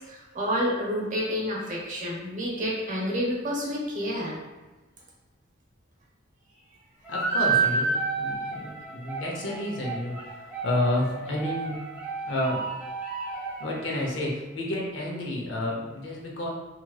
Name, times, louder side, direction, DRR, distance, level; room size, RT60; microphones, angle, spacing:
voice 1, 0.1-4.4, equal, 40° right, -3 dB, 0.7 m, -29 dB
sound 1, 7.0-14.1, right 4 dB, 5° right, 0.9 m, -30 dB
voice 2, 7.1-11.8 12.2-12.6 13.6-16.5, left 1 dB, 65° left, -2 dB, 0.7 m, -30 dB
2.9 x 2.8 x 2.3 m, 1.2 s
head